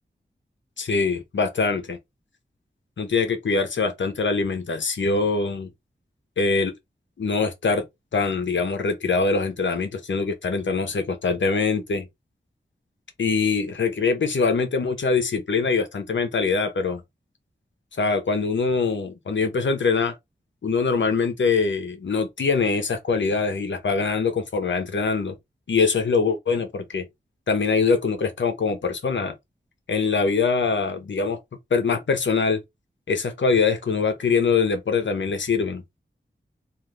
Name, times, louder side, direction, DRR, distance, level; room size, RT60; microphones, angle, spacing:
voice 1, 0.8-2.0 3.0-5.7 6.4-6.7 7.2-7.8 8.1-12.1 13.2-17.0 18.0-20.1 20.6-25.4 25.7-27.1 27.5-29.3 29.9-31.4 31.7-32.6 33.1-35.8, left 4 dB, 80° left, 0.8 m, -23 dB
2.5 x 2.4 x 3.2 m
cardioid pair, 45°, 19 cm